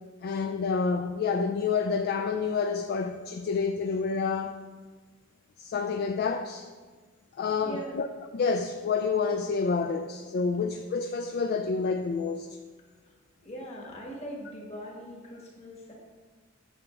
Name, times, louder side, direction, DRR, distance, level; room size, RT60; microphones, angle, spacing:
voice 1, 0.2-4.6 5.6-6.7 7.4-8.1 8.3-12.5, left 5 dB, 50° left, 6 dB, 0.3 m, -28 dB
voice 2, 7.6-8.0 13.4-15.9, right 1 dB, 30° left, -2 dB, 1.5 m, -41 dB
8.9 x 6.0 x 3.3 m, 1.4 s
head